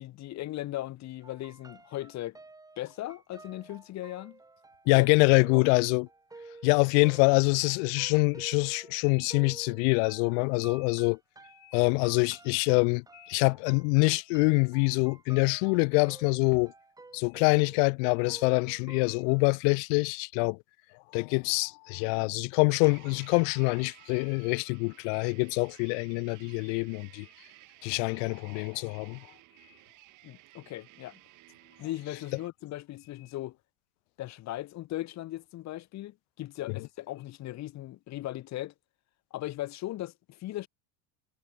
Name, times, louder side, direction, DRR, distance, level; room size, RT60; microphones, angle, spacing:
voice 1, 0.0-2.4 2.8-4.4 4.8-5.1 5.5-5.7 30.2-31.1 31.8-33.6 34.2-38.7 39.3-40.7, left 15 dB, 35° left, 2.1 m, -38 dB
sound 1, 1.2-19.5, right 3 dB, 10° right, 3.7 m, -51 dB
voice 2, 4.9-6.1 6.6-11.2 11.7-16.7 17.1-20.6 21.1-27.3 27.8-29.2, left 40 dB or more, 60° left, 0.6 m, -25 dB
sound 2, 22.7-32.5, right 18 dB, 40° right, 2.7 m, -56 dB
cardioid pair, 160°, 44 cm